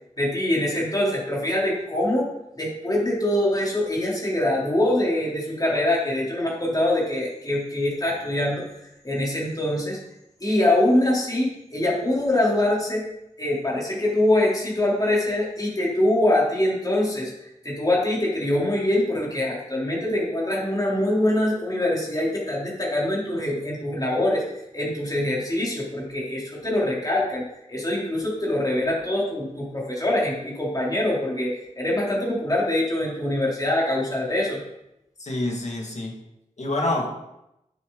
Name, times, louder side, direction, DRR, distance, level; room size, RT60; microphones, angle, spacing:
voice 1, 0.2-2.3 2.6-8.7 9.0-10.0 10.4-13.1 13.4-17.3 17.6-24.4 24.7-27.4 27.7-34.6, left 1 dB, 30° left, -5 dB, 3.5 m, -24 dB
voice 2, 35.2-36.1 36.6-37.1, left 2 dB, 60° left, 0 dB, 2.2 m, -26 dB
10.0 x 8.3 x 4.0 m, 0.85 s
wide cardioid pair, 75°, 13 cm